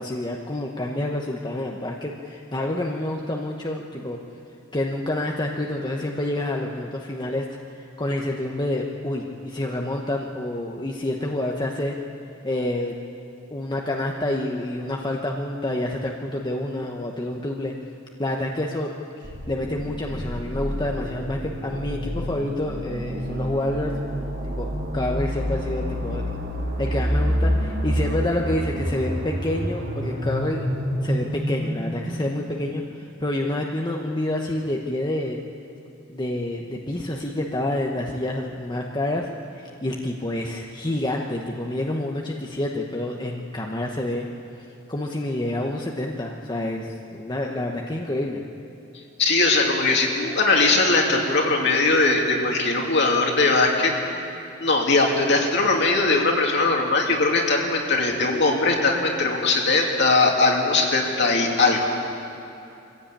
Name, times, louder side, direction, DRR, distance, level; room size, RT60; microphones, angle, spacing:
voice 1, 0.0-4.2 4.7-7.4 7.7-11.9 12.4-13.0 13.5-17.7 18.2-18.9 19.5-23.9 24.4-26.3 26.8-30.7 31.0-35.4 36.1-39.3 39.5-44.3 44.9-48.4, left 1 dB, 20° left, 0 dB, 1.0 m, -28 dB
sound 1, 19.2-33.0, equal, 50° right, 2.5 m, -28 dB
voice 2, 49.2-53.9 54.6-61.9, left 3 dB, 60° left, 0 dB, 2.9 m, -20 dB
22.5 x 15.5 x 8.8 m, 2.8 s
head